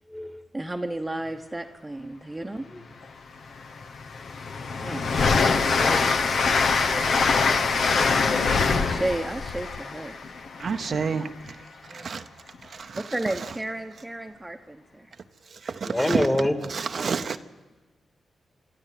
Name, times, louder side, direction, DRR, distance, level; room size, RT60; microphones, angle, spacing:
voice 1, 0.5-2.6 4.8-5.1 8.7-10.2 13.1-15.1 16.6-17.1, right 1 dB, 15° right, 1.0 m, -32 dB
Train, 3.0-3.1 3.6-11.3, left 4 dB, 75° left, 1.0 m, -24 dB
voice 2, 5.5-7.2 7.8-8.1 11.9-12.0 15.8-16.6, left 1 dB, 20° left, 2.3 m, -29 dB
voice 3, 10.6-11.3 11.9-12.2 12.9-13.0 15.6-16.3 16.7-17.4, right 5 dB, 60° right, 0.7 m, -28 dB
27.5 x 12.5 x 7.7 m
cardioid pair, 65°, 0 cm